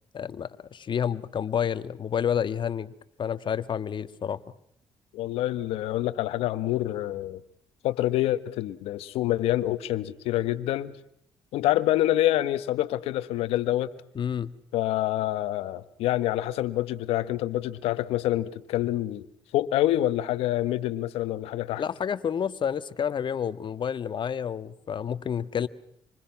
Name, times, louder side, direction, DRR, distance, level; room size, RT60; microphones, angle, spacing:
voice 1, 0.1-2.9 3.2-4.4 14.1-14.5 21.8-25.7, left 8 dB, 55° left, 1.6 m, -29 dB
voice 2, 5.1-7.4 7.8-11.0 11.5-13.9 14.7-19.3 19.5-21.8, left 14 dB, 85° left, 1.5 m, -26 dB
27.5 x 26.0 x 6.0 m
supercardioid pair, 65°, 10 cm